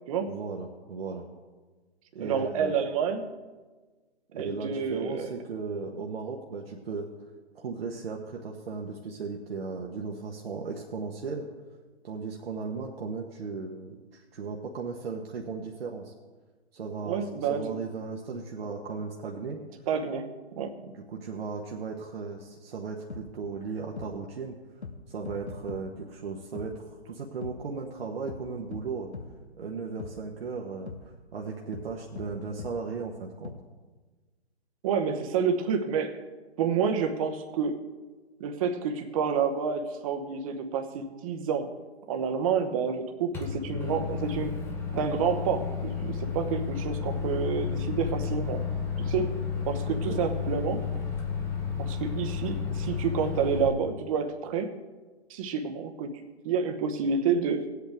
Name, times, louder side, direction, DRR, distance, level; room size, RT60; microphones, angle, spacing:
voice 1, 0.2-1.2 2.1-2.9 4.3-7.1 7.5-11.5 12.0-16.1 16.7-19.6 20.8-24.6 25.1-29.1 29.6-30.9 31.3-33.5 49.9-50.2, right 4 dB, 60° right, 0 dB, 1.2 m, -36 dB
voice 2, 2.2-3.2 4.4-5.3 17.1-17.6 19.9-20.3 20.6-20.7 34.8-36.2 36.6-37.8 38.4-41.7 42.1-44.6 44.9-48.6 49.0-49.4 49.6-50.8 51.8-54.7 55.3-57.7, right 6 dB, 30° right, 6 dB, 1.0 m, -29 dB
sound 1, 23.1-23.2 24.0-24.1 24.8-25.0 25.2-25.8 26.5-26.7 27.4-27.5 28.3-28.4 28.7-28.8 29.1-29.3 30.0-30.1 30.9-31.0 31.7-31.9 32.2-32.3 32.6-32.7 33.4-33.5, left 5 dB, 80° left, 1.2 m, -39 dB
Microwave oven, 43.3-53.7, left 6 dB, 5° left, 0.7 m, -32 dB
18.0 x 8.2 x 3.5 m, 1.3 s
figure-of-eight pair, 135°, 33 cm